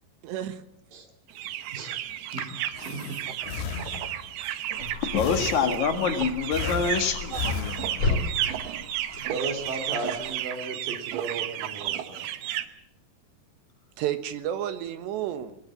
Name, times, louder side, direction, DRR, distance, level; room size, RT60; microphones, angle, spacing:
voice 1, 0.2-0.6 3.3-3.4 3.8-4.1 7.3-7.5 10.0-10.2 14.0-15.6, right 11 dB, 90° right, 10 dB, 3.6 m, -32 dB
sound 1, 1.3-12.6, right 12 dB, 70° right, 2.8 m, -33 dB
Breathing, 2.1-4.4 5.2-6.1 6.5-8.3, left 7 dB, 75° left, 3.4 m, -35 dB
voice 2, 2.9-3.2 9.3-12.1, right 3 dB, 55° right, 5 dB, 4.3 m, -34 dB
sound 2, 4.7-10.4, left 3 dB, 35° left, 3.0 m, -35 dB
voice 3, 5.1-8.2, left 6 dB, 55° left, 7 dB, 2.7 m, -26 dB
21.0 x 20.5 x 7.4 m, 0.77 s
omnidirectional pair, 4.8 m